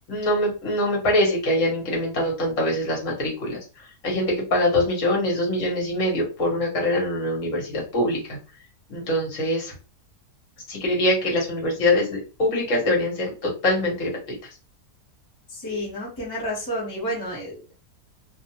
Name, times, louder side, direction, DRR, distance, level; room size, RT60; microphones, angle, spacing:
voice 1, 0.1-3.6 4.0-8.2 8.9-9.7 10.7-14.1, left 1 dB, 55° left, -2 dB, 1.4 m, -23 dB
voice 2, 15.5-17.7, equal, 20° left, -5 dB, 0.9 m, -30 dB
2.7 x 2.3 x 2.8 m, 0.34 s
omnidirectional pair, 1.7 m